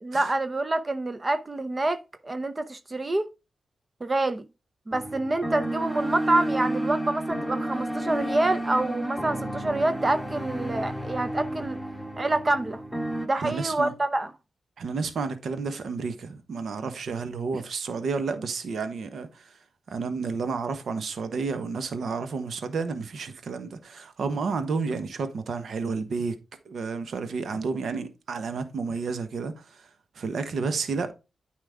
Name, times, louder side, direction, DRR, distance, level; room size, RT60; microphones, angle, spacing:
voice 1, 0.0-3.3 4.0-4.4 4.9-11.8 12.2-12.8 13.2-14.3, right 2 dB, 30° right, 0.7 m, -27 dB
sound 1, 4.9-13.3, right 1 dB, 5° right, 2.0 m, -31 dB
voice 2, 13.3-13.9 14.8-19.6 19.9-26.4 26.6-29.9 30.1-31.1, right 4 dB, 70° right, 1.1 m, -31 dB
9.2 x 5.0 x 3.5 m
cardioid pair, 60°, 0 cm